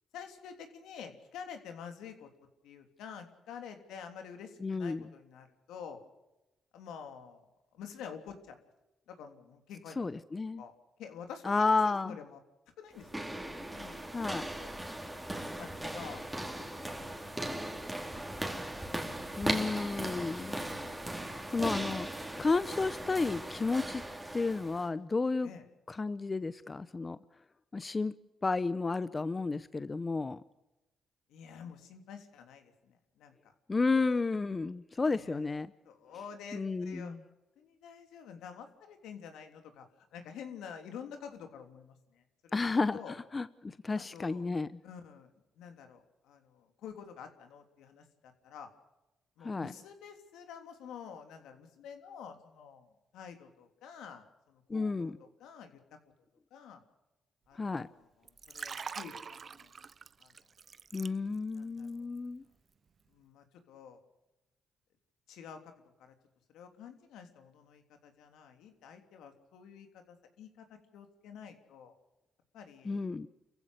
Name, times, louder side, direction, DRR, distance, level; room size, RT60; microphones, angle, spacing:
voice 1, 0.1-2.3 2.6-6.0 6.7-7.4 7.7-8.6 9.1-10.2 10.6-10.7 11.0-12.4 12.8-13.2 13.7-14.0 14.4-14.7 15.6-17.3 20.5-21.1 25.4-25.6 31.3-33.5 35.1-39.9 40.1-42.6 42.9-43.1 43.9-44.5 44.8-45.3 45.6-48.7 49.4-55.8 56.5-56.8 57.5-59.7 60.2-60.3 61.5-62.1 63.1-64.0 65.3-65.7 66.0-66.1 66.5-70.6 70.9-71.9 72.5-73.1, left 7 dB, 85° left, 6 dB, 3.3 m, -49 dB
voice 2, 4.6-5.1 10.0-10.6 11.4-12.2 14.1-14.5 18.8-18.9 19.4-20.6 21.1-21.2 21.5-22.1 22.3-24.0 24.3-25.5 25.9-27.2 27.7-28.1 28.4-30.4 33.7-35.7 36.5-37.2 42.5-44.7 49.4-49.7 54.7-55.1 57.6-57.9 60.9-62.4 72.9-73.3, left 3 dB, 25° left, 15 dB, 0.7 m, -32 dB
sound 1, 12.9-24.9, right 1 dB, 10° right, 3.2 m, -38 dB
Liquid, 58.2-61.6 61.9-62.2, right 6 dB, 45° right, 0.7 m, -44 dB
29.5 x 15.5 x 6.6 m, 1.0 s
cardioid pair, 90°, 0 cm